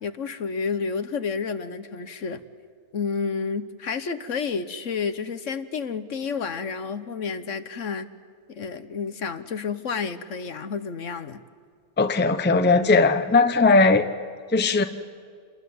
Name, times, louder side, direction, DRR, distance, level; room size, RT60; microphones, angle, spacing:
voice 1, 0.0-2.4 2.9-8.1 8.5-11.4, left 5 dB, 60° left, 11 dB, 1.3 m, -30 dB
voice 2, 12.0-14.1 14.5-14.8, left 3 dB, 10° left, 9 dB, 0.7 m, -18 dB
28.0 x 21.0 x 9.4 m, 2.2 s
omnidirectional pair, 1.5 m